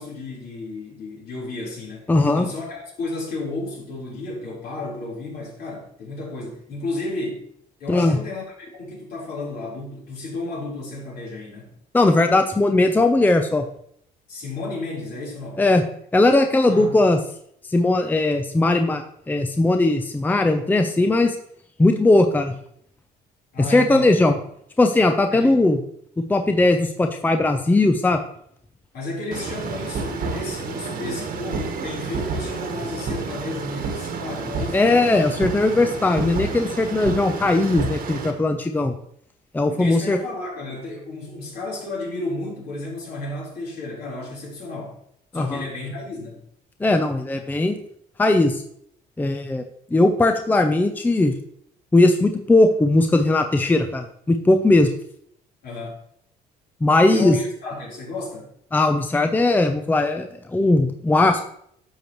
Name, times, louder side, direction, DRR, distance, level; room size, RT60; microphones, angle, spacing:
voice 1, 0.0-7.4 7.8-11.8 14.3-15.7 16.7-16.9 23.5-24.1 25.3-25.5 28.9-34.8 39.7-45.0 45.3-46.4 55.6-56.0 57.1-58.5, left 2 dB, 65° left, -3 dB, 3.9 m, -32 dB
voice 2, 2.1-2.5 7.9-8.2 11.9-13.7 15.6-15.8 16.1-17.2 17.7-21.4 21.8-22.5 23.7-24.4 24.8-25.8 26.2-28.2 34.7-38.9 39.5-40.2 45.3-45.6 46.8-47.8 48.2-48.6 49.2-49.6 49.9-51.4 51.9-54.9 56.8-57.4 58.7-61.4, left 2 dB, 10° left, 6 dB, 0.6 m, -18 dB
sound 1, 29.3-38.3, right 4 dB, 60° right, 1.5 m, -30 dB
10.5 x 6.8 x 3.1 m, 0.70 s
cardioid pair, 110°, 17 cm